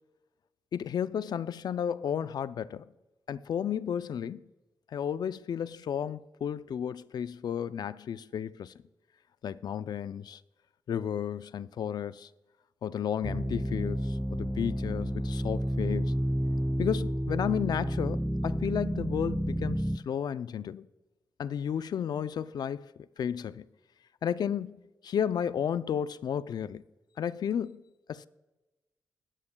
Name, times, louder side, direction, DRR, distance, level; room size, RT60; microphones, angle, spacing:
voice 1, 0.7-2.9 3.3-4.4 4.9-8.7 9.4-10.4 10.9-12.3 12.8-16.1 16.8-20.9 21.4-22.9 23.2-23.7 24.2-24.8 25.0-26.8 27.2-27.8 28.1-28.3, left 8 dB, 70° left, 0.4 m, -33 dB
sound 1, 13.2-20.0, equal, 5° right, 0.3 m, -30 dB
21.0 x 8.8 x 2.3 m
cardioid pair, 65°, 7 cm